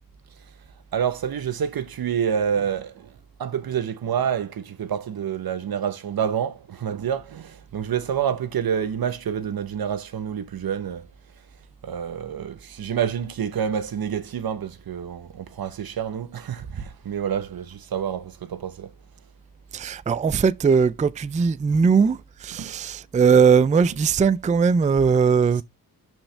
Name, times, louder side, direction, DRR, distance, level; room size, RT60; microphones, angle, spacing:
voice 1, 0.9-3.1 3.4-11.1 11.8-18.9 21.7-21.8 22.6-22.7, right 8 dB, 80° right, 1.0 m, -28 dB
voice 2, 19.7-25.6, right 6 dB, 20° right, 0.3 m, -19 dB
11.5 x 4.4 x 3.3 m
wide cardioid pair, 160°, 35 cm